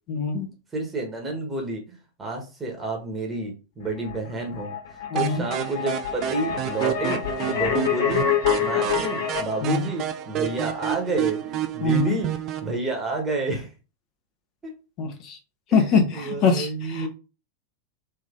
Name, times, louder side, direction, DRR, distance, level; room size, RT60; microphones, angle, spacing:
voice 1, 0.1-0.5 5.1-5.5 9.6-9.9 11.8-12.2 15.0-15.4 15.7-17.1, left 5 dB, 40° left, 5 dB, 1.1 m, -23 dB
voice 2, 0.7-7.2 7.5-8.3 8.6-12.3 12.6-13.7 14.6-14.7 16.1-17.1, right 2 dB, 15° right, 0 dB, 1.3 m, -30 dB
sound 1, 3.8-9.4, left 8 dB, 55° left, 1.7 m, -27 dB
sound 2, 5.2-12.7, right 11 dB, 35° right, 0.5 m, -29 dB
3.5 x 3.1 x 3.8 m, 0.31 s
figure-of-eight pair, 90°, 0 cm